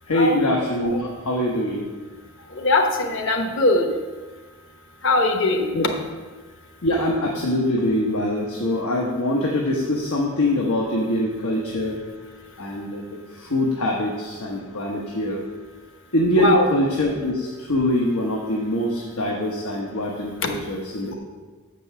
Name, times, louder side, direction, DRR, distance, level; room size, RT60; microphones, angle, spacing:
voice 1, 0.1-1.9 5.7-5.9 6.8-12.0 12.6-15.4 16.1-21.1, left 1 dB, 85° left, -1 dB, 1.0 m, -23 dB
voice 2, 2.5-3.9 5.0-5.7 16.4-16.7 20.4-20.5, left 2 dB, 55° left, 4 dB, 1.0 m, -20 dB
7.4 x 5.4 x 6.7 m, 1.4 s
head